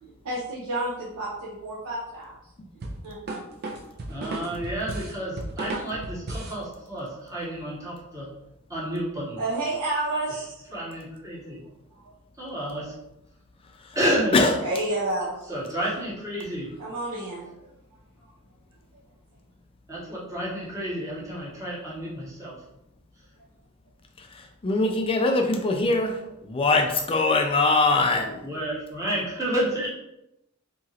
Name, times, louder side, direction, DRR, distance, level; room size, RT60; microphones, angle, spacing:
voice 1, 0.0-2.3 3.0-3.6 9.4-10.6 11.3-11.5 11.9-12.1 14.6-15.5 16.8-17.7 18.2-18.3, right 2 dB, 85° right, -7 dB, 0.7 m, -31 dB
sound 1, 2.8-6.6, right 2 dB, 45° right, 0.4 m, -34 dB
voice 2, 4.1-8.3 8.7-9.4 10.7-11.6 12.4-12.9 13.9-14.4 15.5-16.7 19.9-22.6 28.4-29.9, right 1 dB, 15° right, -6 dB, 1.0 m, -30 dB
voice 3, 24.2-28.5, left 3 dB, 25° left, 4 dB, 0.3 m, -22 dB
2.9 x 2.4 x 2.8 m, 0.86 s
head